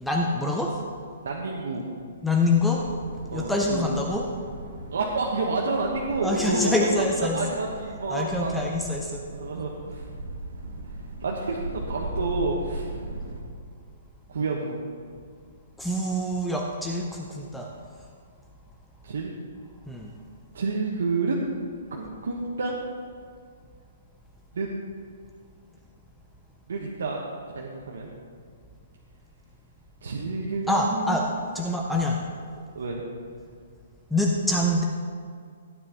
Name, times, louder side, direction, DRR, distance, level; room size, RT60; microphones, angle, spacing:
voice 1, 0.0-0.8 2.2-2.9 3.3-4.3 6.2-7.4 8.1-9.2 15.8-17.7 19.9-20.1 30.7-31.3 31.5-32.2 34.1-34.8, left 2 dB, ahead, -1 dB, 0.5 m, -25 dB
voice 2, 1.2-1.8 3.3-3.8 4.9-6.7 7.3-8.8 9.3-10.1 11.2-13.1 14.3-14.8 19.0-19.3 20.5-21.4 21.9-22.8 24.5-24.7 26.7-27.2 27.5-28.1 30.0-31.2 32.7-33.0, right 3 dB, 75° right, -2 dB, 1.2 m, -29 dB
sound 1, 2.8-13.4, right 2 dB, 60° right, 2.3 m, -38 dB
15.0 x 9.2 x 3.0 m, 2.1 s
hypercardioid pair, 175°, 0 cm